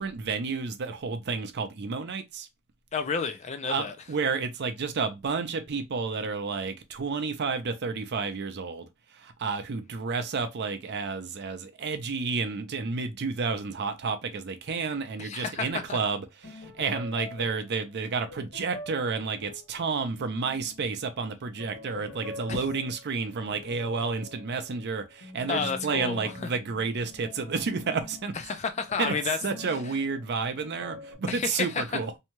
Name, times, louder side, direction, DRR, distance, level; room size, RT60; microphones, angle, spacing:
voice 1, 0.0-2.5 3.7-8.9 9.1-28.3 29.0-29.1 29.4-32.2, right 4 dB, 50° right, 0.5 m, -31 dB
voice 2, 2.9-3.9 15.2-16.0 22.5-22.6 25.5-26.2 28.5-29.4 29.7-29.8 31.3-31.8, left 5 dB, 30° left, 0.4 m, -30 dB
sound 1, 15.7-16.0 16.4-21.0 21.4-31.1, left 2 dB, 65° left, 1.5 m, -45 dB
2.7 x 2.2 x 2.9 m
head